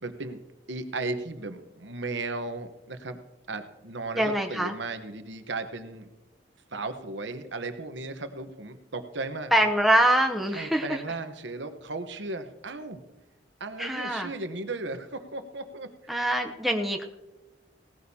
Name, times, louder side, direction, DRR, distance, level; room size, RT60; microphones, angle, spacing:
voice 1, 0.0-0.4 0.7-3.2 3.5-6.1 6.7-9.5 10.5-13.0 13.6-15.9, right 3 dB, 75° right, 8 dB, 1.0 m, -35 dB
voice 2, 4.2-4.7 9.5-11.0 13.8-14.3 16.1-17.0, right 1 dB, ahead, 2 dB, 0.7 m, -24 dB
18.0 x 14.0 x 2.8 m, 1.0 s
head